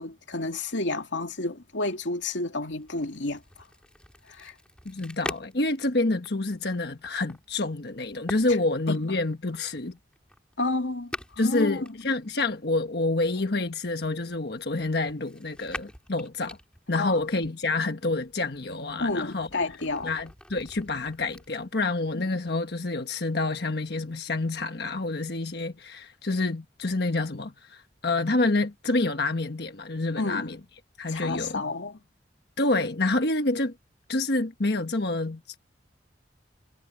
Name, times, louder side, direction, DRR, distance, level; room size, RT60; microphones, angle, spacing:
voice 1, 0.0-3.4 4.3-4.5 8.9-9.2 10.6-12.0 16.9-17.2 19.0-20.1 22.1-22.2 30.2-30.6 31.1-32.0, left 2 dB, 85° left, 2.5 m, -30 dB
sound 1, 2.7-12.6 13.4-17.5 18.1-21.5, left 1 dB, 5° left, 2.3 m, -45 dB
voice 2, 4.8-10.0 11.4-16.6 16.9-19.5 20.0-30.6 31.0-31.6 32.6-33.7 34.1-35.4, left 2 dB, 60° left, 1.4 m, -28 dB
head